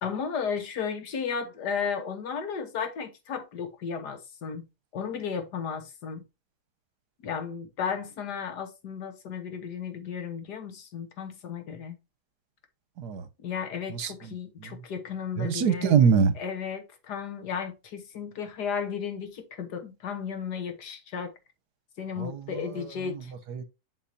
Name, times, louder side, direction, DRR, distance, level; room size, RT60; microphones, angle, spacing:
voice 1, 0.0-4.7 4.9-6.2 7.2-12.0 13.4-16.0 16.4-21.3 22.0-23.3, left 6 dB, 75° left, 1.8 m, -34 dB
voice 2, 13.9-14.3 14.6-14.8 15.4-16.3 22.2-23.6, right 6 dB, 75° right, 1.5 m, -25 dB
7.9 x 5.7 x 2.8 m
omnidirectional pair, 1.8 m